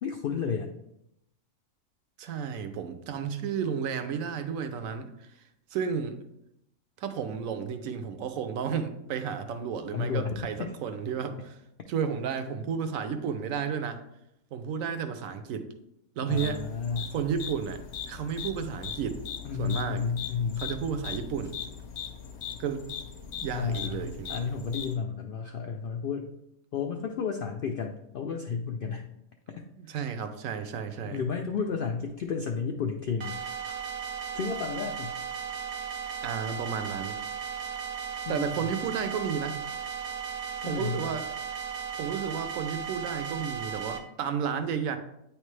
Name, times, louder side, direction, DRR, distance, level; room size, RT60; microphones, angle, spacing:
voice 1, 0.0-0.7 9.9-10.7 16.3-17.1 19.4-20.7 23.5-26.3 26.7-29.1 29.9-30.1 31.1-33.4 34.3-35.1 38.3-38.7 40.6-41.0, left 6 dB, 85° left, 3 dB, 0.4 m, -32 dB
voice 2, 2.2-5.3 5.7-6.2 7.0-11.6 11.9-14.0 14.5-15.7 16.2-16.6 17.1-17.8 18.1-19.2 19.6-20.0 20.6-21.6 22.6-22.9 23.4-24.4 29.7-31.2 36.2-37.2 38.3-39.6 40.7-41.2 42.0-45.0, right 7 dB, 75° right, 9 dB, 1.0 m, -32 dB
sound 1, 16.3-25.0, left 8 dB, 60° left, 0.8 m, -40 dB
sound 2, 33.2-44.0, right 7 dB, 55° right, 0.4 m, -36 dB
9.1 x 3.3 x 3.2 m, 0.82 s
omnidirectional pair, 1.5 m